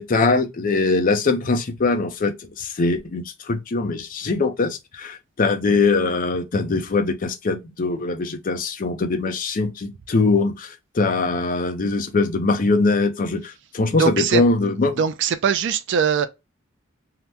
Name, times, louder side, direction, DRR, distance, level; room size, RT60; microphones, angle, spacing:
voice 1, 0.0-14.9, left 3 dB, 40° left, 0.5 m, -22 dB
voice 2, 14.0-14.4 15.0-16.3, right 7 dB, 60° right, 0.4 m, -21 dB
2.8 x 2.1 x 3.3 m
head